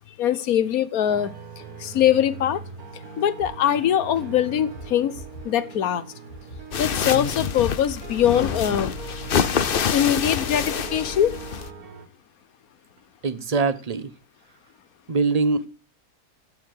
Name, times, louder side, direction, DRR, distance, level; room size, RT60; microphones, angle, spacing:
voice 1, 0.2-1.3 1.8-2.6 3.2-5.2 5.4-6.0 6.8-8.9 9.9-11.3, left 10 dB, 70° left, 1.4 m, -22 dB
sound 1, 1.1-12.1, right 5 dB, 70° right, 2.4 m, -41 dB
sound 2, 3.4-3.8 4.1-4.3 4.5-7.4 7.7-8.9 9.2-9.3, right 1 dB, 90° left, 3.8 m, -43 dB
sound 3, 6.7-11.7, left 7 dB, 45° left, 0.8 m, -26 dB
voice 2, 13.2-14.1 15.1-15.7, right 4 dB, 30° right, 0.9 m, -23 dB
13.5 x 8.8 x 7.8 m
omnidirectional pair, 1.6 m